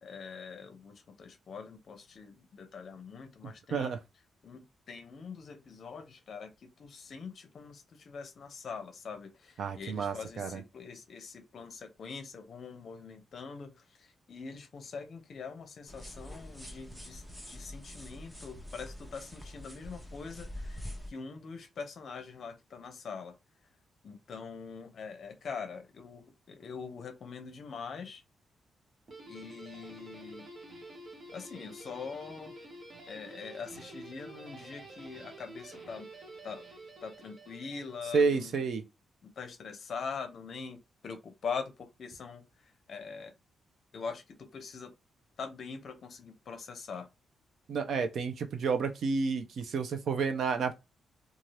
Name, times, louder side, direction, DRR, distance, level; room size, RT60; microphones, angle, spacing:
voice 1, 0.0-4.0 4.4-23.3 24.0-28.2 29.3-30.5 31.3-32.5 33.1-36.1 36.4-36.7 37.0-38.5 39.2-42.4 42.9-43.3 43.9-44.9 45.4-47.1, left 5 dB, 50° left, 0.6 m, -43 dB
voice 2, 9.6-10.6 38.1-38.8 47.7-50.8, right 5 dB, 60° right, 0.5 m, -30 dB
sound 1, 15.9-21.1, equal, 5° right, 0.7 m, -45 dB
Guitar, 29.1-38.4, right 1 dB, 40° right, 0.9 m, -49 dB
2.7 x 2.4 x 3.1 m
wide cardioid pair, 155°, 0 cm